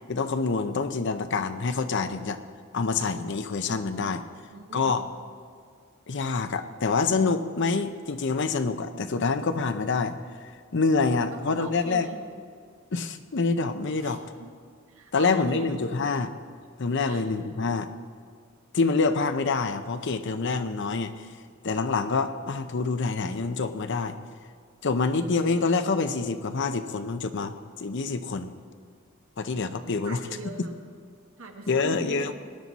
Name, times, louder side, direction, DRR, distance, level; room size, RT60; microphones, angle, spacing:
voice 1, 0.1-2.4 2.7-4.2 4.7-5.1 6.1-10.1 10.4-12.1 12.9-14.2 15.1-16.3 16.8-17.9 18.7-21.1 21.6-24.2 24.8-28.5 29.4-30.2 31.7-32.3, left 4 dB, 55° left, 10 dB, 0.6 m, -26 dB
voice 2, 4.2-5.1 11.3-12.2 14.0-14.5 14.9-15.8 17.0-17.3 30.0-30.8 31.4-32.3, right 2 dB, 70° right, 3 dB, 1.5 m, -41 dB
19.0 x 11.0 x 4.1 m, 2.1 s
head